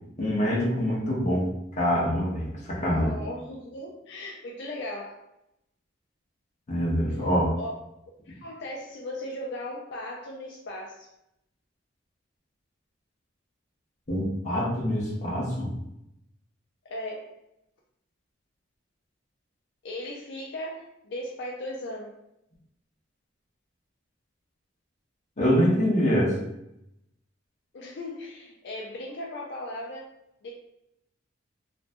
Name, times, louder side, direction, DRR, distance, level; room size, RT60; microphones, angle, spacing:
voice 1, 0.2-1.5 1.8-3.1 6.7-7.5 14.1-15.7 25.4-26.3, equal, 40° left, -4 dB, 0.7 m, -25 dB
voice 2, 3.0-5.2 7.1-7.3 7.6-7.7 8.3-11.1 16.8-17.3 19.8-22.1 27.7-30.1 30.4-30.5, left 1 dB, 60° left, -2 dB, 0.4 m, -37 dB
2.6 x 2.2 x 2.5 m, 0.83 s
head